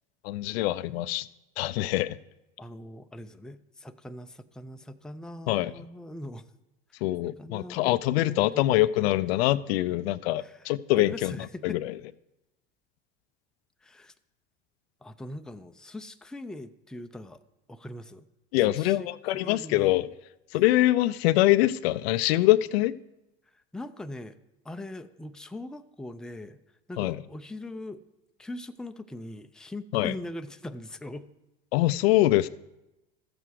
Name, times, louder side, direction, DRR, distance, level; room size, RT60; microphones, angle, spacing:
voice 1, 0.2-1.3 1.6-2.2 5.5-5.7 7.0-11.9 18.5-20.1 20.5-22.9 27.0-27.2 29.9-30.1 31.7-32.5, left 16 dB, 80° left, 0.5 m, -24 dB
voice 2, 2.6-6.5 7.3-8.9 10.4-10.7 11.0-11.8 13.8-14.1 15.0-17.4 17.7-18.3 18.7-19.1 19.3-20.0 23.5-24.4 24.6-26.6 26.9-28.0 28.4-31.3, left 1 dB, ahead, 0.5 m, -41 dB
13.5 x 7.7 x 4.8 m
hypercardioid pair, 90°, 30 cm